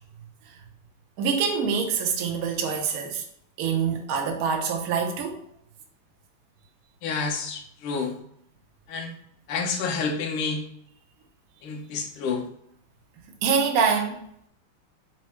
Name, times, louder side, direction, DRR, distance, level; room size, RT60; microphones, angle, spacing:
voice 1, 1.2-3.2 3.6-5.4 13.4-14.2, right 6 dB, 90° right, 2 dB, 0.7 m, -25 dB
voice 2, 7.0-8.2 8.9-9.1 9.5-10.6 11.6-12.5, left 4 dB, 75° left, 2 dB, 1.6 m, -29 dB
4.5 x 2.1 x 4.3 m, 0.68 s
omnidirectional pair, 2.4 m